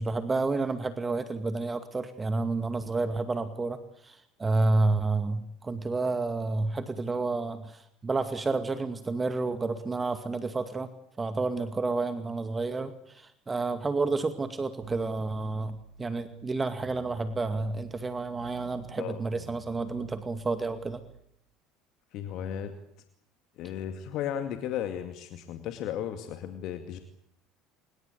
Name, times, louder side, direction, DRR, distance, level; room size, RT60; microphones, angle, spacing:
voice 1, 0.0-3.8 4.0-10.9 11.2-21.0, right 3 dB, 20° right, 10 dB, 2.2 m, -30 dB
sound 1, 14.8-21.2, right 7 dB, 85° right, 1.3 m, -49 dB
voice 2, 22.1-22.7 23.6-27.0, left 10 dB, 55° left, 8 dB, 2.3 m, -35 dB
26.5 x 23.0 x 8.5 m, 0.72 s
figure-of-eight pair, 65°, 0 cm